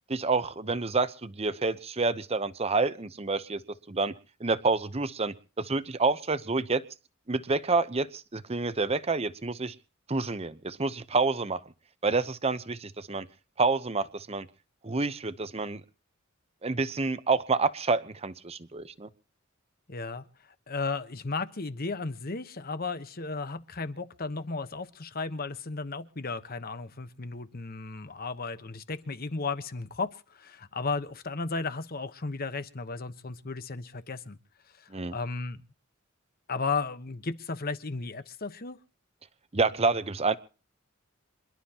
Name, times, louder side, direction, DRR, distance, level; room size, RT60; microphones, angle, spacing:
voice 1, 0.1-3.6 3.9-4.1 4.4-6.8 7.3-9.7 10.1-11.6 12.0-13.3 13.6-14.5 14.8-15.8 16.6-19.1 34.9-35.2 39.5-40.3, right 3 dB, 30° right, 0.8 m, -28 dB
voice 2, 19.9-34.4 34.8-35.6 36.5-38.8, left 4 dB, 45° left, 1.1 m, -34 dB
27.5 x 12.0 x 2.9 m
head